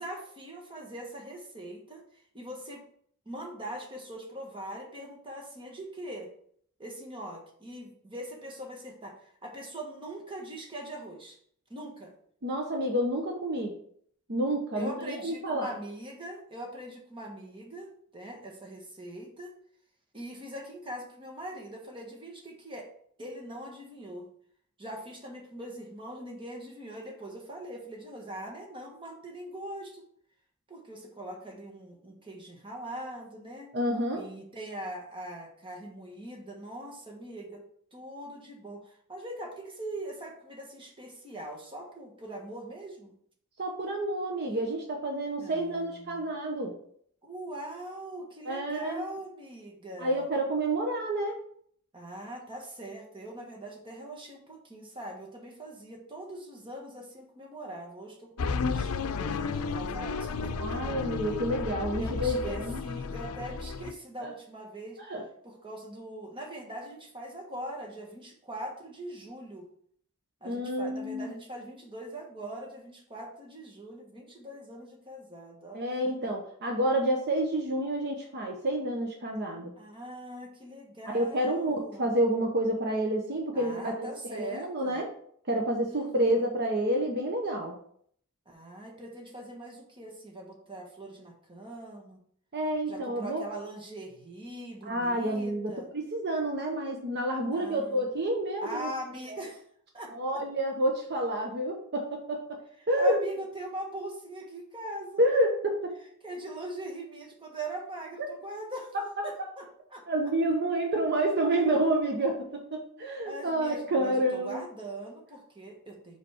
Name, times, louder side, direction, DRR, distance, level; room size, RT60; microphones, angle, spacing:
voice 1, 0.0-2.8 3.2-6.3 6.8-11.4 11.7-12.1 14.7-19.5 20.1-22.9 23.2-24.3 24.8-30.0 30.7-33.7 34.1-37.6 37.9-43.1 45.4-46.3 47.2-50.2 51.9-60.6 62.0-65.0 65.4-69.7 70.4-76.1 79.8-82.1 83.5-85.0 85.8-86.4 88.4-92.2 92.9-95.9 97.5-98.1 98.6-99.6 99.9-100.4 103.0-105.2 106.2-108.9 109.2-110.1 113.2-116.2, right 1 dB, 25° right, 1 dB, 1.4 m, -42 dB
voice 2, 12.4-13.7 14.3-15.7 33.7-34.2 43.6-46.7 48.5-49.0 50.0-51.4 60.6-62.8 64.2-64.3 65.1-65.2 70.4-71.3 75.7-79.7 81.1-85.1 85.5-87.8 92.5-93.4 94.8-98.9 99.3-99.4 100.1-102.6 102.9-103.2 105.2-105.9 110.1-112.5 112.7-114.6, right 1 dB, 50° right, 2 dB, 0.9 m, -29 dB
sound 1, 58.4-63.9, left 4 dB, 85° left, 0.5 m, -33 dB
5.1 x 5.0 x 4.9 m, 0.63 s
head